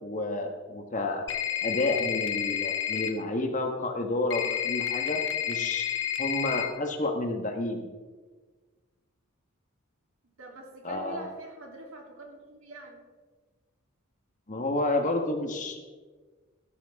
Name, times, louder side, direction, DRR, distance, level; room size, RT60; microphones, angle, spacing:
voice 1, 0.0-1.2 1.6-5.2 5.5-7.9 10.8-11.3 14.5-15.8, left 2 dB, 35° left, 4 dB, 1.5 m, -30 dB
sound 1, 1.3-3.1 4.3-6.7, left 10 dB, 55° left, 1.2 m, -30 dB
voice 2, 10.4-13.0, right 2 dB, 65° right, 0 dB, 3.4 m, -45 dB
18.5 x 12.5 x 3.7 m, 1.4 s
head